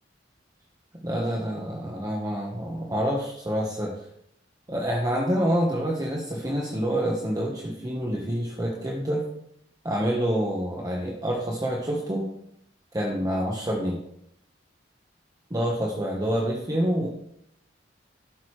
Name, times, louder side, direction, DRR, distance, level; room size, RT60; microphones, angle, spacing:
voice 1, 1.0-3.9 4.7-9.3 9.8-12.3 12.9-14.0 15.5-17.1, equal, 20° right, -1 dB, 1.3 m, -27 dB
13.0 x 11.0 x 3.3 m, 0.73 s
head